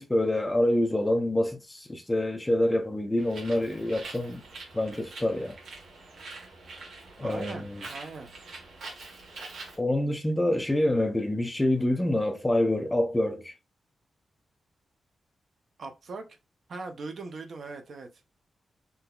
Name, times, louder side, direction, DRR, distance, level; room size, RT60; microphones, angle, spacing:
voice 1, 0.0-4.4 4.7-5.6 7.2-7.8 9.8-13.5, left 1 dB, 10° left, 0.6 m, -26 dB
Bird, 3.2-9.8, right 3 dB, 75° right, 1.5 m, -45 dB
voice 2, 7.2-8.3 15.8-16.2 16.7-18.1, right 3 dB, 55° right, 0.7 m, -40 dB
3.8 x 2.7 x 2.3 m
wide cardioid pair, 130°, 0 cm